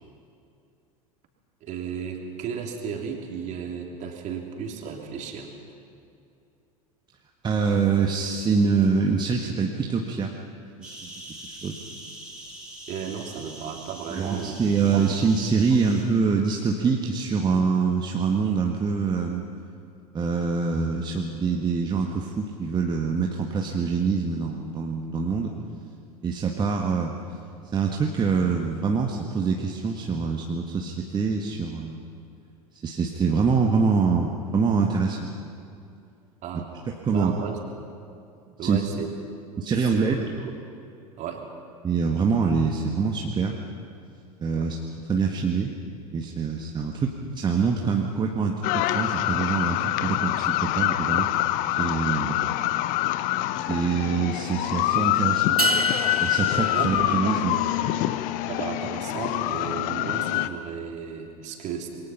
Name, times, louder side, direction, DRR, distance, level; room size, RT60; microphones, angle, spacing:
voice 1, 1.6-5.5 12.9-15.0 36.4-36.7 37.1-37.6 38.6-39.1 39.9-40.5 41.2-41.5 44.5-44.7 56.7-56.9 57.2-57.6 58.5-61.9, right 7 dB, 40° right, 2 dB, 3.4 m, -34 dB
voice 2, 7.4-10.3 10.8-11.1 11.4-11.8 14.1-19.4 20.1-25.5 26.2-27.2 27.7-32.0 32.8-35.5 36.5-36.6 37.0-37.3 38.6-38.8 39.6-40.3 41.8-43.6 44.4-44.8 45.1-45.7 46.1-51.3 51.8-52.4 53.5-55.6 56.2-57.6, right 5 dB, 25° right, 1 dB, 1.6 m, -25 dB
sound 1, 10.8-16.0, right 1 dB, 5° right, 5.6 m, -43 dB
sound 2, 48.6-60.5, left 15 dB, 45° left, 0.8 m, -25 dB
sound 3, 55.6-57.9, right 2 dB, 90° right, 0.7 m, -29 dB
27.0 x 23.0 x 5.8 m, 2.6 s
figure-of-eight pair, 75°, 19 cm